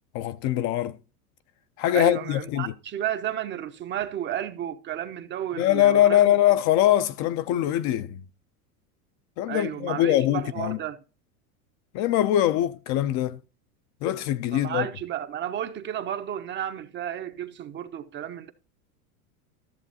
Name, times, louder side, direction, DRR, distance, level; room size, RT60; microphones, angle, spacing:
voice 1, 0.1-1.0 1.8-2.7 5.6-8.2 9.4-10.8 11.9-13.4 14.0-14.9, left 12 dB, 40° left, 0.4 m, -22 dB
voice 2, 1.9-6.4 9.5-11.0 14.5-18.5, right 10 dB, 25° right, 0.5 m, -32 dB
13.5 x 7.1 x 2.7 m
hypercardioid pair, 110°, 45 cm